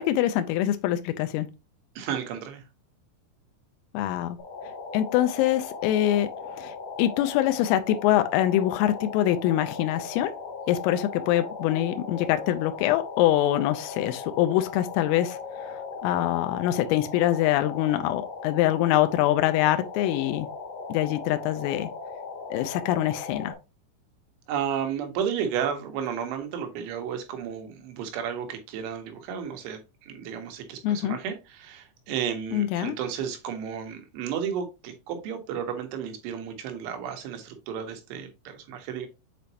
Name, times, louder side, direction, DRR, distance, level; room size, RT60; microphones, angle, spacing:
voice 1, 0.0-1.5 3.9-4.4 4.9-6.3 6.6-10.3 10.7-20.5 20.9-21.9 22.5-23.5 30.8-31.2 32.5-32.9, left 13 dB, 90° left, 3.3 m, -24 dB
voice 2, 2.0-2.6 24.5-39.1, right 8 dB, 75° right, 3.4 m, -33 dB
sound 1, 4.4-23.5, left 4 dB, 45° left, 4.0 m, -38 dB
7.9 x 5.1 x 2.8 m
omnidirectional pair, 5.8 m